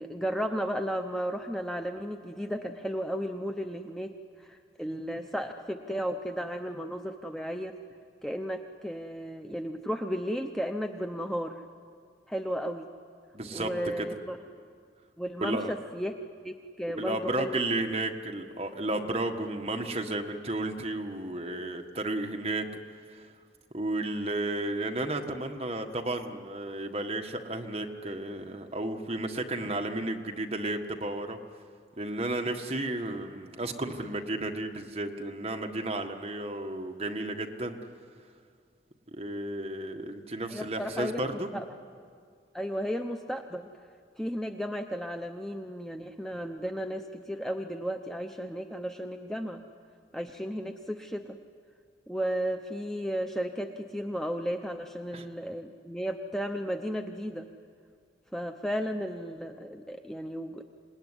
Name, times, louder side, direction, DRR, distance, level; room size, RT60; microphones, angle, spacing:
voice 1, 0.0-4.1 4.4-7.7 8.2-11.6 12.3-12.9 13.5-14.4 15.2-16.1 16.4-17.5 40.5-41.2 41.5-41.6 42.5-43.7 44.2-49.6 50.1-51.4 52.1-57.5 58.3-60.6, equal, ahead, 5 dB, 0.7 m, -34 dB
voice 2, 13.3-13.7 14.0-14.2 15.4-15.7 16.9-22.7 23.1-23.2 23.7-31.4 32.0-37.8 39.2-41.5 55.1-55.3, right 2 dB, 35° right, 4 dB, 1.6 m, -33 dB
26.5 x 19.0 x 9.8 m, 2.1 s
head